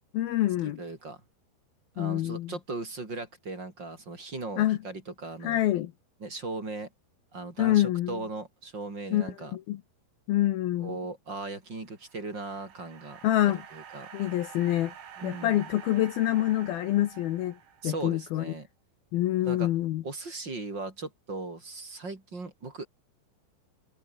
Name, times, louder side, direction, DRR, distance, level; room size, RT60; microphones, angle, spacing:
voice 1, 0.1-0.8 2.0-2.5 4.6-4.8 5.4-5.9 7.6-8.2 9.1-9.8 10.3-11.0 13.2-13.6 14.1-14.9 15.2-17.6 17.8-18.5 19.1-20.0, left 14 dB, 75° left, 2.4 m, -26 dB
voice 2, 0.8-1.2 1.9-5.6 6.2-6.9 7.3-9.6 10.8-13.2 13.4-14.1 15.2-15.7 17.8-18.7 19.4-19.7 20.0-22.9, right 3 dB, 25° right, 4.6 m, -38 dB
sound 1, 11.8-18.2, right 8 dB, 75° right, 5.9 m, -48 dB
omnidirectional pair, 5.4 m